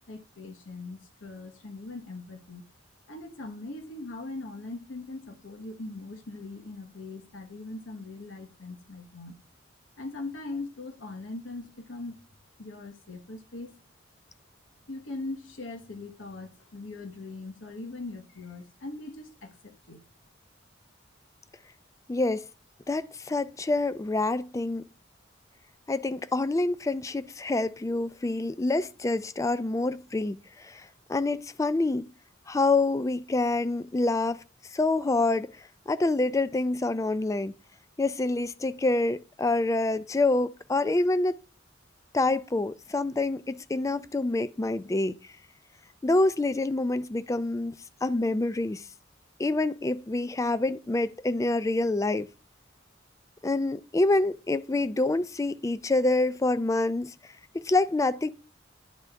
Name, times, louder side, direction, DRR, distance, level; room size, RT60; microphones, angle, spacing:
voice 1, 0.1-2.6 3.1-9.3 10.0-12.2 12.6-13.8 14.9-20.0, left 2 dB, 90° left, 1.1 m, -40 dB
voice 2, 22.1-22.5 22.9-24.8 25.9-32.1 32.5-34.4 34.7-35.6 35.9-37.5 38.0-41.4 42.1-45.2 46.0-47.7 48.0-48.8 49.4-52.3 53.4-57.1 57.5-58.3, left 2 dB, 15° left, 0.3 m, -26 dB
10.5 x 3.6 x 3.3 m
head